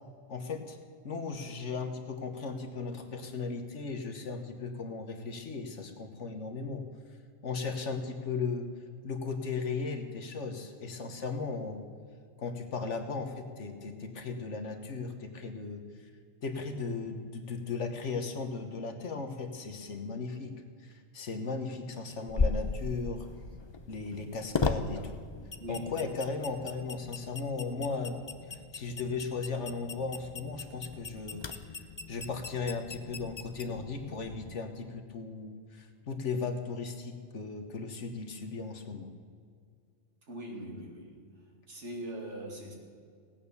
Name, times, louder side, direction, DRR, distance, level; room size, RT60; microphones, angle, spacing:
voice 1, 0.3-0.8 1.0-6.8 7.4-8.7 9.0-11.8 12.4-15.8 16.4-20.5 20.8-23.3 23.9-25.1 25.7-31.4 32.1-39.1, left 4 dB, 65° left, 6 dB, 1.6 m, -36 dB
sound 1, 22.3-34.5, left 4 dB, 30° left, 0.5 m, -37 dB
voice 2, 25.6-25.9 40.3-41.2 41.7-42.7, right 1 dB, 60° right, 0 dB, 2.6 m, -41 dB
17.5 x 8.9 x 6.9 m, 2.2 s
omnidirectional pair, 1.3 m